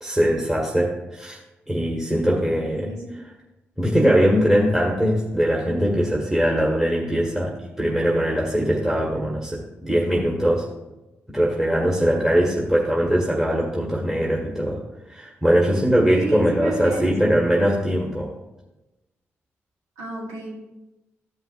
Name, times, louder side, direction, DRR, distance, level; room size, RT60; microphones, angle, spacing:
voice 1, 0.0-1.4 1.7-2.9 3.8-10.7 11.3-14.8 15.1-18.3, equal, 10° right, -3 dB, 1.7 m, -21 dB
voice 2, 2.6-3.2 16.1-17.7 20.0-20.6, right 2 dB, 90° right, -3 dB, 1.6 m, -32 dB
13.0 x 5.6 x 2.5 m, 1.0 s
hypercardioid pair, 40°, 6 cm